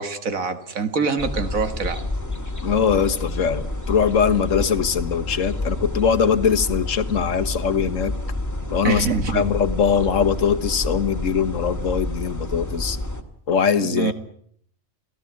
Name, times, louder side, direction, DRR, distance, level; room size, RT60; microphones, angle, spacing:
voice 1, 0.0-2.0 8.8-9.5 13.8-14.1, right 5 dB, 80° right, 9 dB, 2.1 m, -25 dB
sound 1, 1.2-13.2, left 2 dB, 10° left, 2.1 m, -29 dB
voice 2, 2.6-8.1 8.7-9.1 9.3-13.0 13.5-14.1, left 7 dB, 65° left, 9 dB, 1.6 m, -21 dB
27.5 x 16.5 x 8.5 m, 0.64 s
omnidirectional pair, 1.4 m